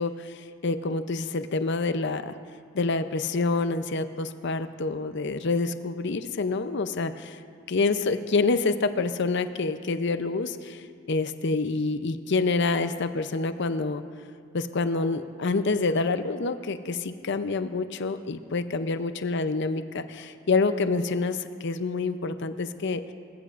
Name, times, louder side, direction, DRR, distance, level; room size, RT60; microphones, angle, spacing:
voice 1, 0.0-2.3 2.7-7.3 7.7-10.8 11.1-14.0 14.5-23.0, left 3 dB, 60° left, 10 dB, 0.6 m, -27 dB
24.5 x 15.0 x 2.5 m, 2.2 s
head